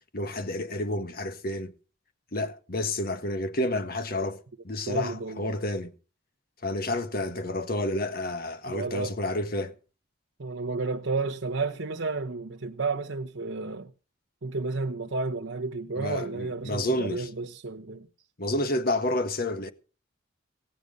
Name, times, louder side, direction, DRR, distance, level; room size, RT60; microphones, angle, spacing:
voice 1, 0.1-1.7 2.3-5.9 6.6-9.7 16.0-17.3 18.4-19.7, left 1 dB, 50° left, 1.5 m, -30 dB
voice 2, 4.9-5.6 8.7-9.1 10.4-13.9 14.4-18.1, right 3 dB, 75° right, 1.0 m, -32 dB
17.0 x 9.4 x 5.3 m
head